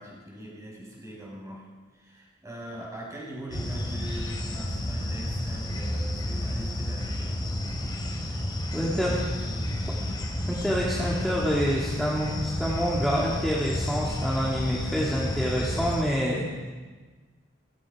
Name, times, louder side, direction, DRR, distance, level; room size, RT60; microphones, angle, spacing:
voice 1, 0.0-1.7 1.9-7.4 8.7-10.2, equal, 15° right, -3 dB, 5.5 m, -42 dB
sound 1, 3.5-16.0, left 1 dB, 20° left, 2.7 m, -31 dB
voice 2, 8.7-9.1 10.5-16.4, equal, ahead, -5 dB, 2.3 m, -27 dB
18.0 x 15.5 x 4.9 m, 1.4 s
head